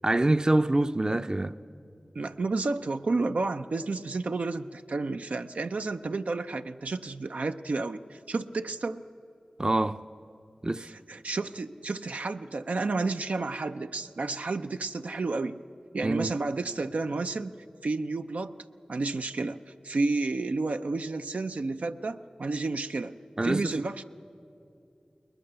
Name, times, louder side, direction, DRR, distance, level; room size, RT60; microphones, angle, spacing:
voice 1, 0.0-1.6 9.6-10.0 10.6-10.9 16.0-16.3 23.4-23.8, right 2 dB, 30° right, 0.5 m, -25 dB
voice 2, 2.1-9.0 10.8-15.6 15.9-18.6 18.9-19.6 19.8-23.1 23.4-24.0, right 3 dB, 85° right, 0.5 m, -31 dB
21.5 x 20.0 x 6.8 m
wide cardioid pair, 45°, 2 cm